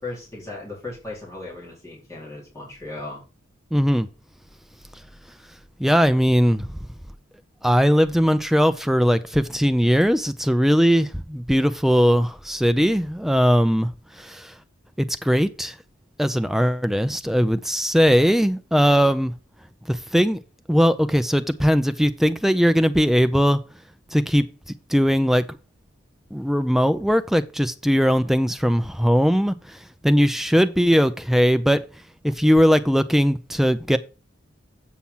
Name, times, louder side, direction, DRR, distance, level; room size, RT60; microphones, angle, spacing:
voice 1, 0.0-3.2, left 2 dB, 15° left, 4.2 m, -36 dB
voice 2, 3.7-4.1 5.8-6.7 7.6-13.9 14.2-14.5 15.0-15.7 16.2-19.3 19.9-20.4 20.7-23.6 24.1-24.5 24.9-25.6 26.3-29.8 30.0-31.8 32.2-34.0, equal, ahead, 0.5 m, -19 dB
8.5 x 5.8 x 5.6 m
head